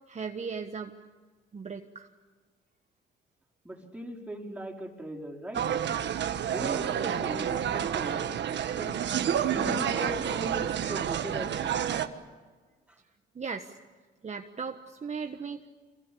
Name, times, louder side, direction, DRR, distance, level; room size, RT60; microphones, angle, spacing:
voice 1, 0.1-1.0 1.5-2.1 7.0-7.2 13.3-13.8 14.2-15.7, right 5 dB, 35° right, 4 dB, 1.4 m, -37 dB
voice 2, 3.6-5.8 6.4-8.2 8.6-8.9 9.5-11.7, equal, 5° right, 0 dB, 4.8 m, -39 dB
sound 1, 5.5-12.1, right 9 dB, 65° right, 1.5 m, -29 dB
26.5 x 22.5 x 8.7 m, 1.4 s
cardioid pair, 90°, 20 cm